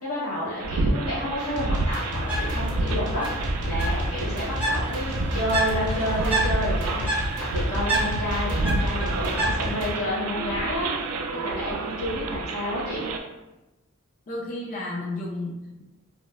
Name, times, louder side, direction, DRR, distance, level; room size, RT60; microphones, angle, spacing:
voice 1, 0.0-13.1, left 1 dB, 80° left, -8 dB, 1.3 m, -30 dB
sound 1, 0.6-13.2, right 2 dB, 80° right, 0.3 m, -29 dB
sound 2, 1.4-9.9, equal, 50° right, 0.7 m, -34 dB
Bird, 2.1-9.9, right 1 dB, 10° right, 0.6 m, -30 dB
voice 2, 14.3-15.8, left 2 dB, 35° left, -2 dB, 0.3 m, -32 dB
2.8 x 2.0 x 2.3 m, 1.0 s
head